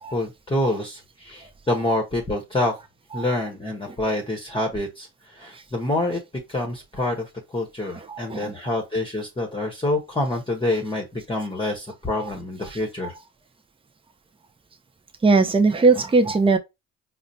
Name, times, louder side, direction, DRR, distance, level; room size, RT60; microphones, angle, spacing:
voice 1, 0.1-2.8 3.1-6.2 6.5-13.1, left 1 dB, 15° left, 1.1 m, -27 dB
voice 2, 7.9-8.7 15.2-16.6, right 3 dB, 15° right, 0.7 m, -20 dB
5.0 x 2.1 x 2.7 m
hypercardioid pair, 55°, 36 cm